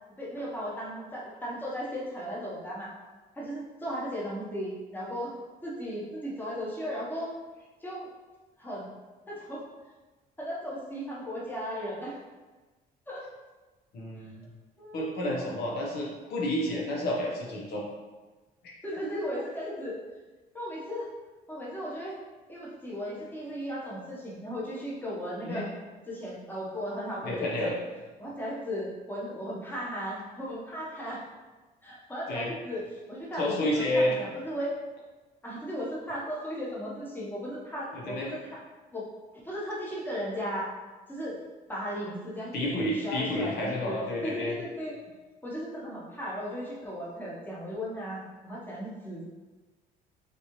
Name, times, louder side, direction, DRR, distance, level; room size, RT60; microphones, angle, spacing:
voice 1, 0.2-2.9 3.4-5.3 5.6-7.3 7.8-8.0 8.6-8.9 9.3-9.6 10.4-12.2 13.1-13.2 14.8-15.4 18.8-20.0 20.5-21.1 21.5-22.2 22.5-25.7 26.1-27.7 28.2-31.2 31.8-34.8 35.4-38.6 38.9-39.1 39.4-40.7 41.1-41.4 41.7-44.9 45.4-49.2, equal, 10° left, -5 dB, 1.1 m, -36 dB
voice 2, 13.9-14.5 14.9-17.8 19.0-19.4 19.6-19.7 25.4-25.7 27.2-27.7 32.3-32.5 33.4-34.1 37.9-38.3 42.5-44.6, left 1 dB, 70° left, -3 dB, 1.0 m, -30 dB
4.2 x 3.4 x 3.1 m, 1.2 s
cardioid pair, 110°, 17 cm